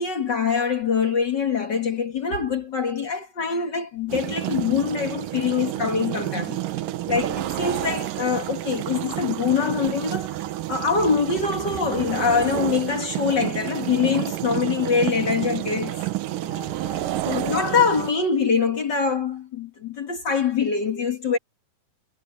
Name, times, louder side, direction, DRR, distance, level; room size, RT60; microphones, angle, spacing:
voice 1, 0.0-6.6 7.1-10.4 10.7-16.0 17.3-21.4, left 5 dB, 40° left, 1.9 m, -24 dB
sound 1, 4.1-18.1, right 15 dB, 85° right, 2.6 m, -29 dB
voice 2, 16.2-17.5, right 1 dB, 30° right, 7.1 m, -44 dB
omnidirectional pair, 3.8 m